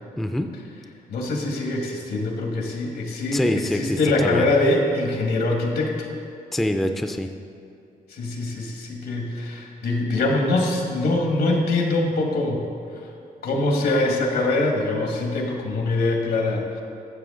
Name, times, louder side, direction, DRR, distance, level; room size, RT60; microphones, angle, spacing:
voice 1, 0.2-0.5 3.3-4.4 6.5-7.3, left 1 dB, ahead, 6 dB, 0.3 m, -24 dB
voice 2, 1.1-6.1 8.1-12.7 12.9-13.0 13.4-16.8, left 2 dB, 80° left, 1 dB, 1.6 m, -23 dB
12.5 x 7.5 x 3.7 m, 2.6 s
wide cardioid pair, 160°, 16 cm